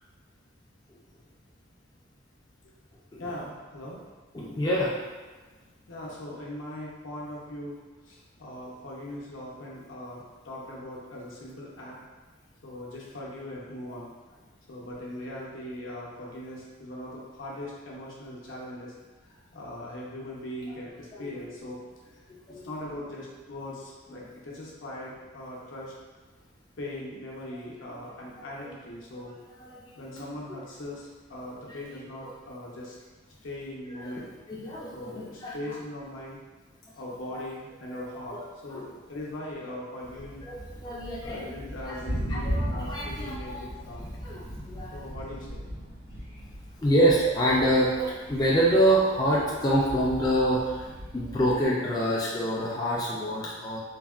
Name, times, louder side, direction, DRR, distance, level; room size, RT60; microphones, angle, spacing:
voice 1, 3.2-4.0 5.9-7.8 8.0-12.0 12.6-14.1 14.7-18.9 19.2-21.8 22.5-25.9 26.8-29.3 29.9-33.0 33.4-34.3 34.9-36.4 36.9-40.5 41.2-44.1 44.9-45.7, left 1 dB, 75° left, -4 dB, 0.7 m, -40 dB
voice 2, 4.3-4.9 21.2-21.4 22.5-22.7 29.7-30.2 30.5-30.6 34.1-35.1 35.4-35.5 37.9-38.0 38.3-38.4 38.7-38.8 40.4-41.5 41.9-42.0 42.3-43.6 44.2-45.0 46.8-50.9 51.1-53.8, right 1 dB, 20° left, -5 dB, 0.3 m, -26 dB
Thunder, 40.0-51.7, equal, 75° right, 1.4 m, -38 dB
3.4 x 2.1 x 2.3 m, 1.3 s
head